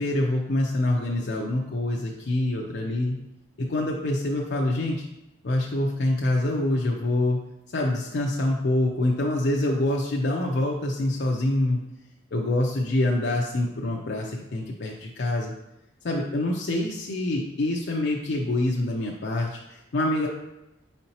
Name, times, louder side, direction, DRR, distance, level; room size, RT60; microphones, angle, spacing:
voice 1, 0.0-3.2 3.6-5.0 5.4-7.4 7.7-11.8 12.3-15.5 16.0-20.3, left 1 dB, 55° left, -2 dB, 0.4 m, -25 dB
4.1 x 3.8 x 2.9 m, 0.92 s
head